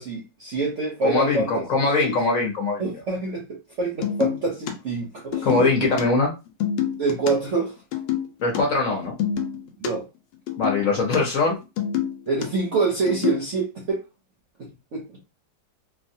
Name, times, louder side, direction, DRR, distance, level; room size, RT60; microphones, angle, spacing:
voice 1, 0.0-1.5 1.9-2.1 2.8-6.0 7.0-7.7 9.8-10.0 12.3-14.0 14.6-15.0, right 3 dB, 60° right, 0.8 m, -26 dB
voice 2, 1.0-2.8 5.4-6.3 8.4-9.2 10.6-11.6, left 3 dB, 55° left, 1.1 m, -22 dB
sound 1, 4.0-4.7 5.2-6.0 6.5-7.3 7.9-8.3 8.5-8.6 8.9-9.9 10.5-11.2 11.6-12.5 13.1-13.5, left 10 dB, 85° left, 1.3 m, -27 dB
3.1 x 2.3 x 2.6 m
omnidirectional pair, 2.0 m